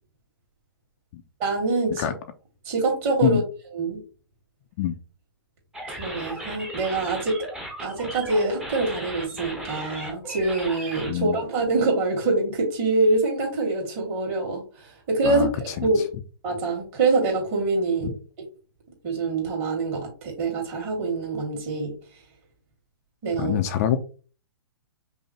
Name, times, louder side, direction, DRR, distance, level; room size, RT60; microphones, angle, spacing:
voice 1, 1.4-2.0 2.6-3.4 3.7-4.0 5.9-7.4 7.8-15.5 15.8-16.0 16.4-18.1 19.0-22.0 23.2-23.6, right 3 dB, 35° right, 0 dB, 2.2 m, -25 dB
sound 1, 5.7-11.1, right 1 dB, 5° right, 0.8 m, -36 dB
voice 2, 15.2-15.9 18.0-18.1 23.4-24.0, left 11 dB, 40° left, 8 dB, 0.5 m, -25 dB
5.4 x 2.1 x 3.1 m, 0.36 s
hypercardioid pair, 130°, 13 cm